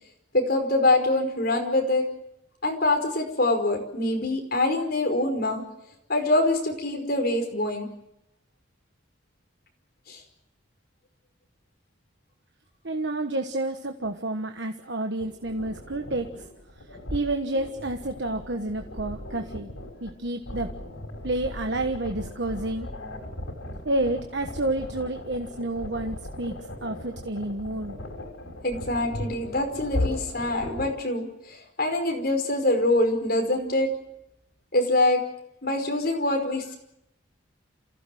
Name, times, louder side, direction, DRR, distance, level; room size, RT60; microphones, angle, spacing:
voice 1, 0.3-2.0 2.6-5.6 6.1-7.9 10.1-10.2 28.6-33.9 34.7-35.2 35.6-36.8, left 2 dB, 50° left, 3 dB, 5.2 m, -24 dB
voice 2, 12.8-16.4 17.1-19.7 20.0-20.7 21.2-22.9 23.8-28.0, right 2 dB, 60° right, 5 dB, 1.4 m, -30 dB
sound 1, 15.2-30.9, left 1 dB, 85° left, 5.7 m, -37 dB
28.5 x 16.0 x 7.8 m, 0.80 s
head